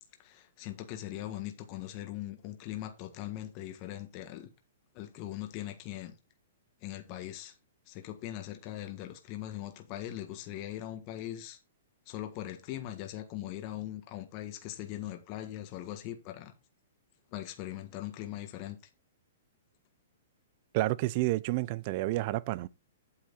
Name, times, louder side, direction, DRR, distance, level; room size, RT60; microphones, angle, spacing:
voice 1, 0.2-4.5 4.9-6.1 6.8-7.6 7.9-11.6 12.0-16.5 17.3-18.8, left 13 dB, 35° left, 1.5 m, -40 dB
voice 2, 20.7-22.7, right 18 dB, 40° right, 0.5 m, -30 dB
8.7 x 7.4 x 3.9 m
hypercardioid pair, 145°, 0 cm